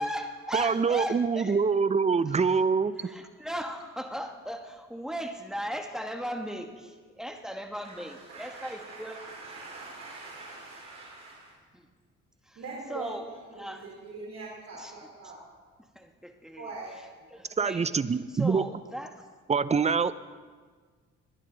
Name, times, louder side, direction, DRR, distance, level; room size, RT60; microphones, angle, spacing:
voice 1, 0.0-1.6 2.4-2.5 3.0-9.2 11.7-11.9 12.5-12.6 12.9-13.3 13.5-13.9 14.8-14.9 15.9-16.7 17.3-18.0 18.3-19.2, equal, ahead, 4 dB, 1.4 m, -37 dB
voice 2, 0.5-3.0 17.6-18.7 19.5-20.1, right 5 dB, 20° right, 15 dB, 0.5 m, -25 dB
voice 3, 7.7-11.5 12.6-15.4 16.6-17.3, right 3 dB, 60° right, -5 dB, 3.6 m, -43 dB
21.5 x 10.5 x 3.9 m, 1.5 s
cardioid pair, 90°, 30 cm